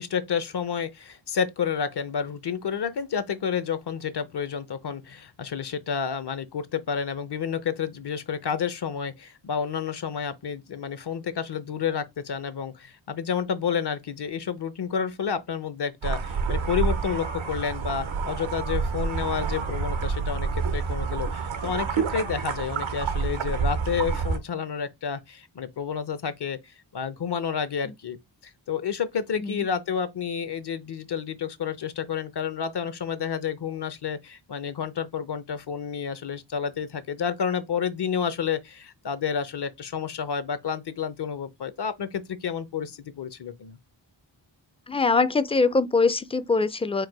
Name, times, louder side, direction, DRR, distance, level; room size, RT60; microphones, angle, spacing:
voice 1, 0.0-26.6 26.9-28.2 28.4-43.8, left 7 dB, 60° left, 0.7 m, -30 dB
sound 1, 16.0-24.4, right 5 dB, 90° right, 0.9 m, -28 dB
voice 2, 44.9-47.1, left 3 dB, 15° left, 0.3 m, -23 dB
4.7 x 2.1 x 4.6 m
wide cardioid pair, 85°, 46 cm